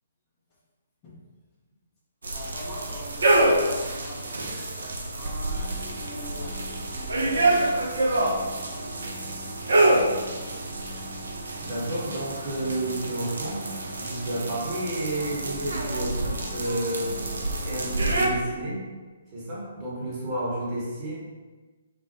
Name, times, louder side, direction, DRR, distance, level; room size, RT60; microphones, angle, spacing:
voice 1, 2.2-9.9 10.4-11.1, left 1 dB, 25° left, -6 dB, 0.5 m, -43 dB
sound 1, 2.2-18.3, right 2 dB, 65° right, 0.3 m, -27 dB
sound 2, 5.4-18.4, right 1 dB, 5° right, 0.9 m, -44 dB
voice 2, 11.6-13.7 14.0-17.1 17.6-18.8 19.3-21.2, right 1 dB, 25° right, -8 dB, 0.9 m, -31 dB
2.2 x 2.0 x 2.8 m, 1.3 s
figure-of-eight pair, 130°, 0 cm